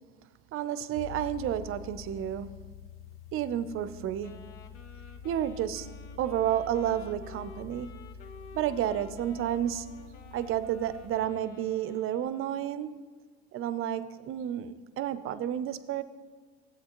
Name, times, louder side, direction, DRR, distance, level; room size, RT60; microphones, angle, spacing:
voice 1, 0.5-2.6 3.3-4.5 5.2-5.9 6.2-8.1 8.5-13.0 13.5-16.0, right 10 dB, 40° right, 0.5 m, -31 dB
sound 1, 1.0-11.2, left 5 dB, 40° left, 0.9 m, -47 dB
Wind instrument woodwind instrument, 4.2-12.7, left 6 dB, 80° left, 0.7 m, -52 dB
13.5 x 8.1 x 2.9 m
supercardioid pair, 100°, 33 cm